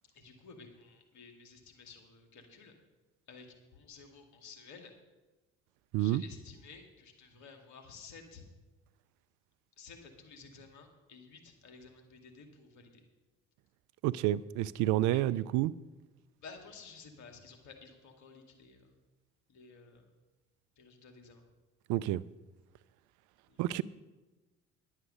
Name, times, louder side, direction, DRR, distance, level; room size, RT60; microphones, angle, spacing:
voice 1, 0.1-2.7 3.3-4.9 6.0-8.4 9.8-13.0 15.1-15.4 16.4-18.9 19.5-20.0 20.8-21.4 23.5-23.6, left 5 dB, 60° left, 2.3 m, -53 dB
voice 2, 14.0-15.7 21.9-22.2 23.6-23.8, right 15 dB, 60° right, 0.5 m, -29 dB
11.0 x 8.2 x 6.5 m
hypercardioid pair, 60°, 34 cm